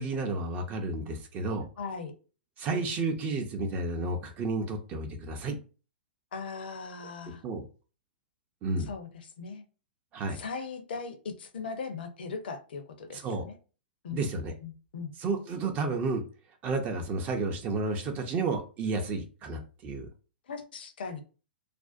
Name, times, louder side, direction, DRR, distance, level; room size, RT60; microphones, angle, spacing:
voice 1, 0.0-1.6 2.6-5.6 7.4-7.6 8.6-8.9 10.1-10.4 13.1-13.4 14.1-14.5 15.2-16.2 16.6-20.1, right 3 dB, 30° right, 4 dB, 0.5 m, -31 dB
voice 2, 1.8-2.1 6.3-7.4 8.8-9.6 10.3-13.6 14.0-14.3 14.6-15.1 20.5-21.2, left 5 dB, 65° left, 8 dB, 0.6 m, -39 dB
2.5 x 2.1 x 2.4 m, 0.35 s
hypercardioid pair, 115°, 6 cm